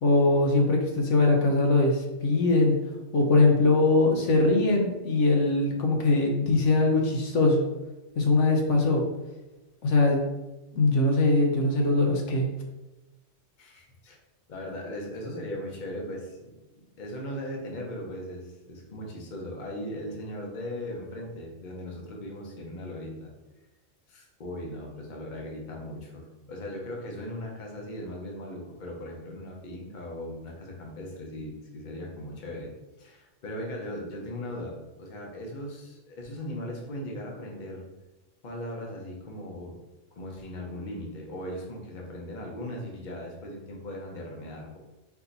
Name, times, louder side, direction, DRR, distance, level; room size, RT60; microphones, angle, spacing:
voice 1, 0.0-2.8 3.1-7.6 8.2-9.0 9.8-10.3 10.7-12.5, left 2 dB, 80° left, 1 dB, 1.1 m, -22 dB
voice 2, 13.6-14.2 14.5-23.3 24.1-32.7 33.0-37.9 38.4-39.8 40.1-44.8, left 1 dB, 45° left, -1 dB, 0.9 m, -38 dB
4.5 x 2.7 x 3.9 m, 1.1 s
omnidirectional pair, 1.2 m